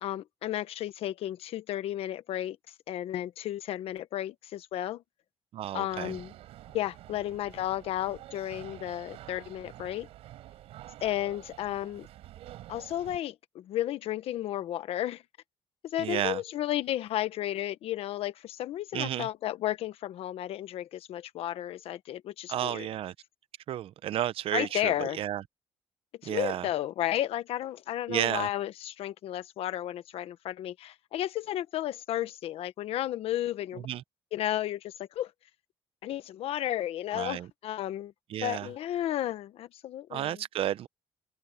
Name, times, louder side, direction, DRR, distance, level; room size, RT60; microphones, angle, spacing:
voice 1, 0.0-2.6 2.9-5.0 5.7-6.3 6.7-10.1 11.0-12.1 12.7-15.2 15.8-22.9 24.5-25.2 26.2-33.9 34.3-35.3 36.0-38.1 38.4-40.4, left 13 dB, 80° left, 1.2 m, -33 dB
voice 2, 5.5-6.2 16.0-16.4 18.9-19.3 22.5-23.1 23.7-25.4 26.2-26.7 28.1-28.5 33.7-34.0 37.1-37.5 38.3-38.7 40.1-40.9, right 12 dB, 70° right, 0.8 m, -32 dB
sound 1, 5.9-13.2, right 14 dB, 90° right, 6.2 m, -48 dB
cardioid pair, 105°, 10 cm